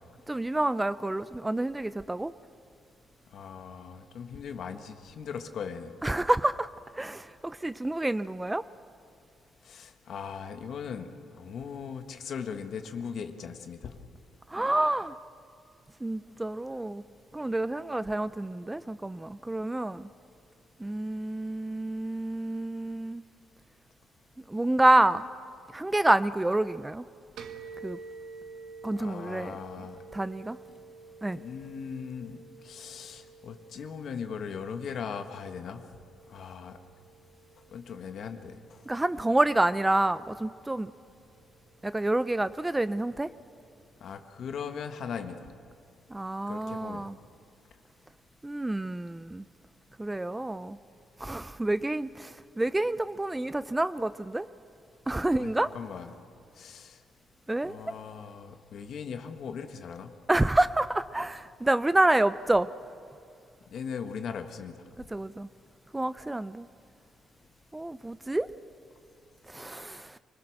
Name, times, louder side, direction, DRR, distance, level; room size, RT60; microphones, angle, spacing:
voice 1, 0.3-2.3 6.0-6.7 6.9-8.6 14.5-15.2 16.0-17.0 17.3-20.1 20.8-23.2 24.5-25.3 25.7-27.1 27.8-28.0 28.8-29.6 30.1-30.6 31.2-31.4 38.9-40.9 41.8-43.3 46.1-47.1 48.4-49.5 50.0-50.8 51.2-54.5 55.1-55.7 57.5-57.8 60.3-62.7 65.0-65.5 65.9-66.7 67.7-68.5 69.5-70.2, right 2 dB, 15° right, 0.5 m, -28 dB
voice 2, 3.3-5.9 9.6-13.9 29.0-30.0 31.3-32.4 32.6-35.8 36.3-36.8 37.7-38.8 44.0-45.5 46.5-47.1 55.3-56.1 56.6-57.0 57.6-60.1 63.7-64.7, left 6 dB, 65° left, 1.5 m, -39 dB
sound 1, 27.4-44.7, right 4 dB, 80° right, 1.5 m, -51 dB
25.5 x 20.0 x 6.5 m
cardioid pair, 90°, 0 cm